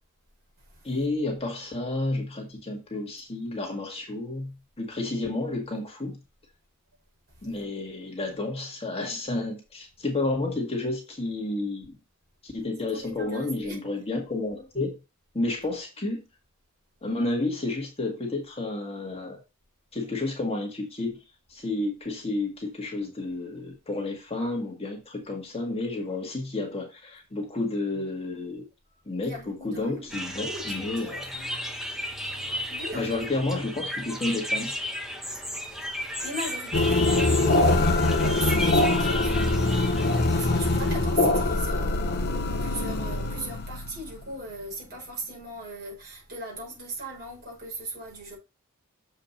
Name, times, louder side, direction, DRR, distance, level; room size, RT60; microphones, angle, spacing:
voice 1, 0.8-6.2 7.4-12.0 12.4-15.0 15.3-16.2 17.0-19.4 19.9-21.2 21.5-28.6 29.1-31.2 32.9-34.7, left 2 dB, 25° left, 1.8 m, -31 dB
voice 2, 12.9-13.8 29.2-31.5 32.2-33.2 35.3-40.0 40.3-48.4, right 1 dB, 50° right, 5.1 m, -38 dB
sound 1, 30.1-40.9, equal, ahead, 1.2 m, -34 dB
sound 2, 36.7-44.7, left 2 dB, 50° left, 1.0 m, -23 dB
7.4 x 4.9 x 4.1 m
head